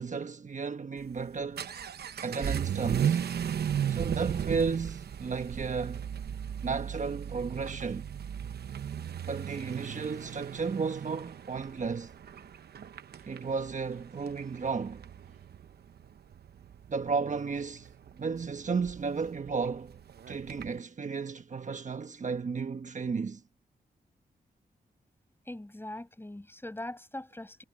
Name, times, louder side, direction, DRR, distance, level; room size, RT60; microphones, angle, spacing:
voice 1, 0.0-1.7 2.2-3.2 3.9-6.1 6.6-8.0 9.3-12.1 13.3-15.0 16.9-17.9 18.2-20.0 20.3-23.4, right 5 dB, 50° right, 1.2 m, -33 dB
Vehicle / Accelerating revving vroom, 1.0-20.8, right 9 dB, 80° right, 0.9 m, -36 dB
voice 2, 25.5-27.6, left 1 dB, 15° left, 7.5 m, -41 dB
cardioid pair, 85°, 16 cm